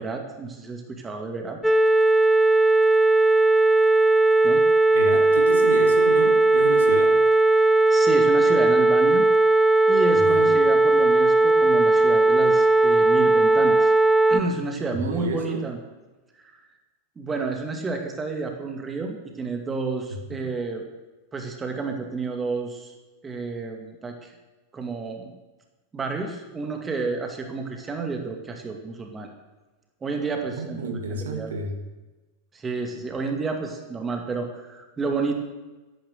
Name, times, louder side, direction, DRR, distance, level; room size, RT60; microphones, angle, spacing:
voice 1, 0.0-1.6 4.4-4.6 7.6-9.3 9.9-13.9 14.3-15.8 16.4-16.5 17.2-20.8 21.3-22.9 23.2-24.3 24.7-25.3 25.9-29.3 30.0-31.5 32.5-35.3, right 4 dB, 15° right, 4 dB, 2.3 m, -30 dB
sound 1, 1.6-14.4, right 2 dB, ahead, 1.0 m, -18 dB
voice 2, 4.9-7.2 10.1-10.6 14.9-15.7 20.3-20.4 30.5-31.8, right 3 dB, 65° right, 4 dB, 2.0 m, -31 dB
13.5 x 11.5 x 6.7 m, 1.1 s
figure-of-eight pair, 90°, 0 cm